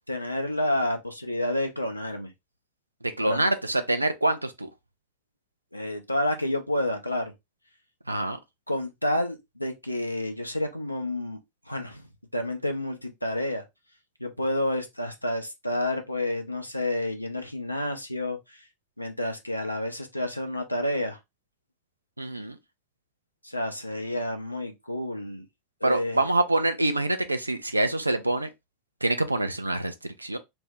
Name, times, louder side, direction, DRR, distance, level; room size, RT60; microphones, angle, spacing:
voice 1, 0.1-2.3 3.2-3.4 5.7-7.3 8.7-11.4 11.7-12.1 12.3-13.6 14.2-18.4 19.0-21.2 23.4-25.4 25.8-26.2, left 1 dB, 90° left, 0.5 m, -29 dB
voice 2, 3.2-4.7 8.1-8.4 22.2-22.6 25.8-28.5 29.0-30.4, right 2 dB, 85° right, 0.4 m, -25 dB
2.6 x 2.1 x 3.4 m
figure-of-eight pair, 90°, 0 cm